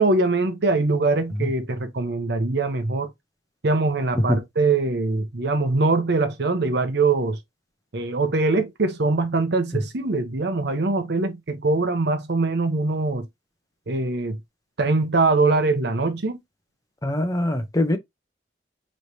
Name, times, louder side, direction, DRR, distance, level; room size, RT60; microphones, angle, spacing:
voice 1, 0.0-3.1 3.6-7.4 7.9-13.3 13.9-14.4 14.8-16.4, right 3 dB, 65° right, 0.8 m, -22 dB
voice 2, 17.0-18.0, left 1 dB, 20° left, 0.7 m, -22 dB
4.7 x 3.2 x 2.7 m
head